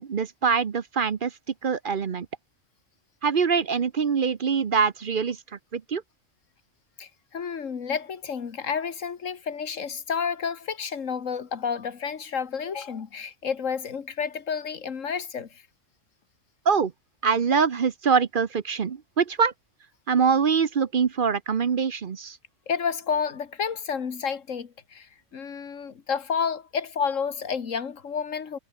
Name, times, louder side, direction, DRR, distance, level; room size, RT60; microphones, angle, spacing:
voice 1, 0.0-1.3 1.6-2.3 3.2-5.4 5.7-6.0 16.7-16.9 17.2-19.5 20.1-22.4, right 6 dB, 45° right, 0.9 m, -24 dB
voice 2, 7.0-15.6 22.7-28.6, left 6 dB, 90° left, 1.9 m, -30 dB
omnidirectional pair, 1.3 m